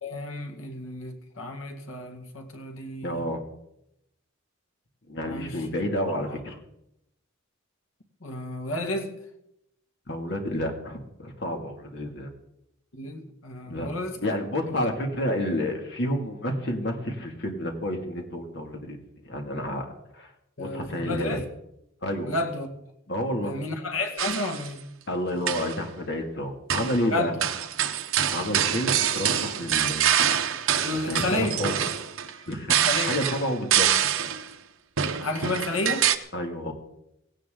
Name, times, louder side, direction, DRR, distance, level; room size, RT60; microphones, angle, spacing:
voice 1, 0.0-3.2 5.3-5.7 6.1-6.2 8.2-9.2 12.9-14.2 14.7-14.8 20.6-21.5 22.2-22.7 23.4-24.8 27.1-27.4 30.8-31.6 32.8-33.1 35.2-36.1, left 2 dB, 80° left, 2.0 m, -31 dB
voice 2, 3.0-3.4 5.1-6.6 10.1-12.3 13.7-13.9 14.2-19.0 19.2-19.9 20.1-20.3 20.6-21.4 22.0-22.3 23.1-23.5 25.1-27.3 28.3-30.2 30.9-31.8 32.5-33.9 36.3-36.7, left 1 dB, 55° left, 2.4 m, -30 dB
sound 1, 24.2-24.7 25.3-25.8 26.7-27.0 27.4-34.5 35.0-36.2, right 9 dB, 75° right, 0.9 m, -25 dB
17.5 x 17.0 x 3.9 m
head